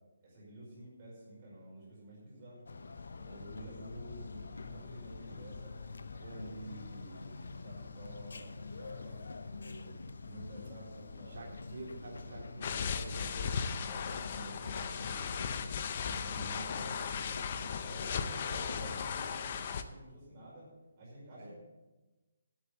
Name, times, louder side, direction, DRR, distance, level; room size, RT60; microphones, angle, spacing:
voice 1, 0.2-2.8 3.2-5.7 6.1-9.9 10.2-11.4 11.9-12.4 13.9-15.7 16.0-17.4 17.9-20.7 21.0-21.5, right 1 dB, 25° right, -6 dB, 5.1 m, -50 dB
sound 1, 2.7-19.2, left 4 dB, 80° left, 0.7 m, -46 dB
voice 2, 6.2-6.5 11.3-14.0 21.4-21.5, right 2 dB, 50° right, -3 dB, 2.5 m, -47 dB
sound 2, 12.6-19.8, left 6 dB, 30° left, 0.6 m, -37 dB
8.7 x 8.5 x 8.2 m, 1.1 s
hypercardioid pair, 175°, 0 cm